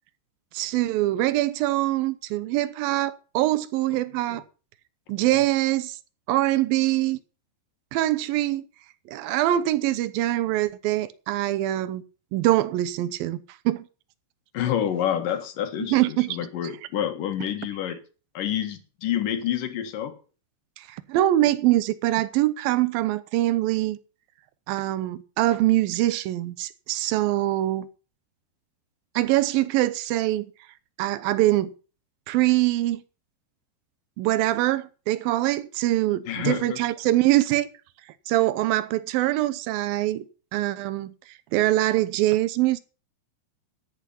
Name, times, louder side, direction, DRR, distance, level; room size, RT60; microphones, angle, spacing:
voice 1, 0.5-4.4 5.1-6.0 6.3-7.2 7.9-8.7 9.1-12.0 12.3-13.4 13.7-13.9 15.8-16.4 20.8-24.0 24.7-27.9 29.2-30.5 31.0-31.7 32.3-33.0 34.2-37.7 38.3-40.3 40.5-42.8, right 15 dB, 80° right, 2.2 m, -23 dB
voice 2, 14.5-18.0 18.3-20.2 36.3-36.8, left 10 dB, 60° left, 3.0 m, -28 dB
14.0 x 9.6 x 5.7 m
omnidirectional pair, 5.0 m